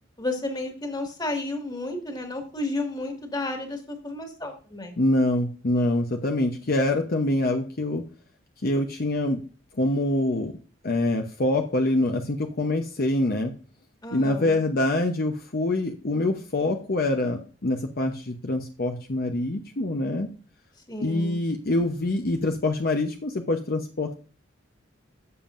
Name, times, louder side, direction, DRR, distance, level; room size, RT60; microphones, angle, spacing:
voice 1, 0.2-5.0 14.0-14.6 20.9-21.4, left 2 dB, 20° left, 3 dB, 1.8 m, -32 dB
voice 2, 5.0-8.0 8.6-9.4 9.8-10.5 10.8-13.5 14.1-20.3 21.0-24.2, left 2 dB, 50° left, 4 dB, 0.8 m, -25 dB
12.5 x 7.3 x 2.5 m, 0.38 s
head